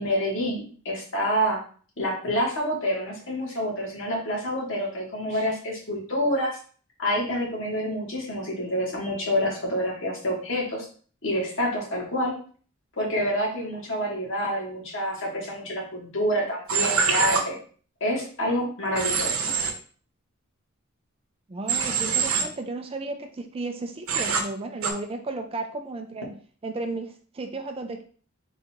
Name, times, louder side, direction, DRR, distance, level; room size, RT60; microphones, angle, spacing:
voice 1, 0.0-1.6 2.0-6.6 7.0-10.9 11.2-12.3 13.0-17.6 18.0-19.5, equal, 60° left, -2 dB, 1.6 m, -27 dB
Human voice / Train, 16.7-17.4 19.0-19.7 21.7-22.4 24.1-24.4 24.8-24.9, right 6 dB, 70° right, 0.8 m, -24 dB
voice 2, 21.5-28.0, right 2 dB, 25° right, 5 dB, 0.4 m, -34 dB
4.0 x 2.5 x 4.3 m, 0.43 s
head